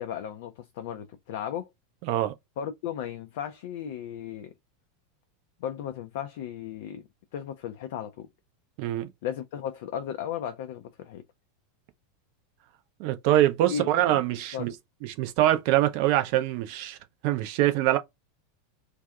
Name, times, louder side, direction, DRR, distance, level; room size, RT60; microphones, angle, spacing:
voice 1, 0.0-1.7 2.6-4.5 5.6-7.1 7.3-8.3 9.2-11.2 13.7-14.2 14.5-14.7, left 9 dB, 55° left, 0.4 m, -35 dB
voice 2, 2.0-2.3 8.8-9.1 13.0-14.7 15.0-17.0 17.2-18.0, right 14 dB, 45° right, 0.4 m, -24 dB
2.6 x 2.3 x 2.2 m
figure-of-eight pair, 85°, 0 cm